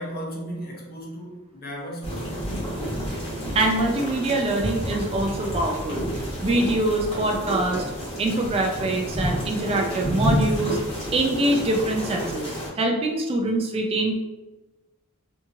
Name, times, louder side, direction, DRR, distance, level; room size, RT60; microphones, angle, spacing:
voice 1, 0.0-2.6, equal, 45° left, -1 dB, 0.7 m, -36 dB
sound 1, 2.0-12.7, equal, 25° left, 1.0 m, -29 dB
voice 2, 3.5-6.0 6.4-7.8 8.2-10.8 11.1-14.1, right 2 dB, 25° right, 1 dB, 0.3 m, -24 dB
2.8 x 2.7 x 2.4 m, 1.1 s
head